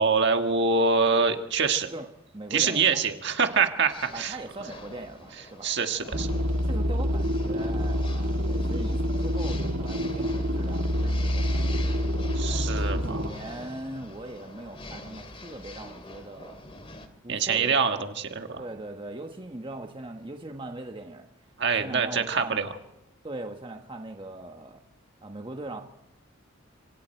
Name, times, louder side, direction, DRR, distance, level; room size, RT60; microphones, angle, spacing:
voice 1, 0.0-1.9 2.5-4.4 5.6-6.3 12.3-13.2 17.3-18.6 21.6-22.7, right 5 dB, 55° right, 6 dB, 1.6 m, -25 dB
voice 2, 2.3-3.0 4.1-5.7 6.7-11.8 12.8-16.6 17.2-18.1 18.6-21.3 21.8-22.6 23.2-24.8 25.2-25.8, right 2 dB, 25° right, 4 dB, 1.3 m, -40 dB
sound 1, 3.9-17.1, left 2 dB, 25° left, 2.4 m, -45 dB
sound 2, 6.1-13.3, equal, 75° right, 2.1 m, -27 dB
26.5 x 25.5 x 4.5 m, 0.91 s
head